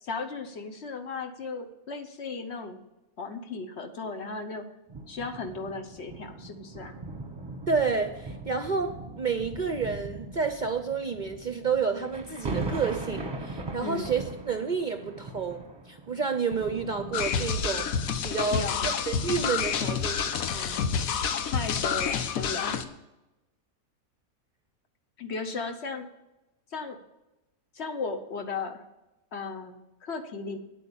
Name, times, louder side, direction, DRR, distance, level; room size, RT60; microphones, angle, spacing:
voice 1, 0.0-2.8 3.2-4.7 5.1-7.0 13.8-14.1 18.5-18.9 21.4-22.8 25.2-26.1 26.7-27.0 27.7-28.8 29.3-30.6, left 4 dB, 55° left, 5 dB, 1.2 m, -36 dB
sound 1, 4.9-17.7 18.4-18.5, right 2 dB, 20° right, 1.0 m, -40 dB
voice 2, 7.7-20.8, right 5 dB, 45° right, 7 dB, 0.6 m, -30 dB
sound 2, 17.1-22.8, left 6 dB, 85° left, 1.3 m, -28 dB
9.3 x 8.3 x 7.1 m, 0.98 s
omnidirectional pair, 1.4 m